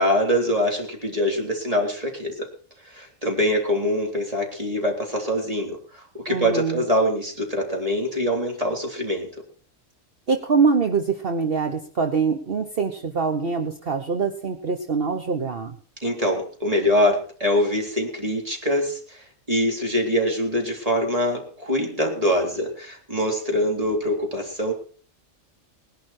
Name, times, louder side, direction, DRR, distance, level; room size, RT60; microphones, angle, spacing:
voice 1, 0.0-2.5 2.8-9.3 16.0-24.7, equal, 30° right, 1 dB, 3.7 m, -24 dB
voice 2, 6.3-6.8 10.3-15.8, right 5 dB, 50° right, 5 dB, 1.4 m, -24 dB
19.5 x 11.5 x 4.4 m, 0.43 s
omnidirectional pair, 1.3 m